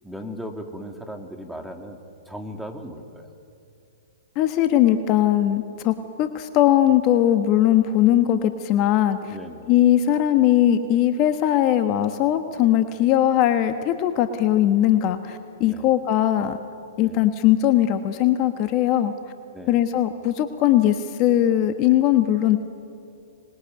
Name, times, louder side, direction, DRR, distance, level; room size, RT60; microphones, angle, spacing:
voice 1, 0.0-2.0 2.3-3.3 9.3-9.7 15.6-15.9 17.0-17.2 19.5-19.8, equal, ahead, 3 dB, 2.5 m, -37 dB
voice 2, 4.3-9.4 9.7-16.6 17.0-19.1 19.7-22.6, left 12 dB, 40° left, 8 dB, 1.3 m, -20 dB
25.0 x 21.0 x 9.5 m, 2.6 s
hypercardioid pair, 120°, 0 cm